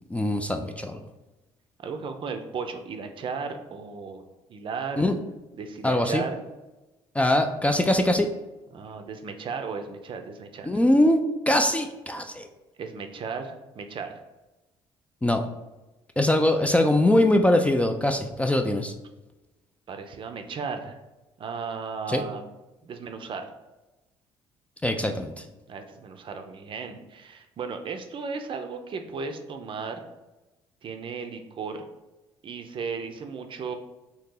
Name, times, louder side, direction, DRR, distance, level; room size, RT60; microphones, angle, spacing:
voice 1, 0.1-1.0 5.0-5.2 5.8-6.2 7.2-8.3 10.6-11.2 11.5-12.5 15.2-15.4 16.2-18.9 22.1-22.2 24.8-25.3, left 1 dB, 10° left, 5 dB, 0.3 m, -22 dB
voice 2, 1.8-4.2 4.5-5.1 5.6-6.4 8.7-10.8 12.8-14.1 17.1-17.2 19.9-21.0 21.4-22.5 22.8-23.5 25.7-30.0 30.8-31.8 32.4-33.7, right 5 dB, 45° right, 6 dB, 0.5 m, -35 dB
2.8 x 2.8 x 3.7 m, 1.1 s
supercardioid pair, 80°, 12 cm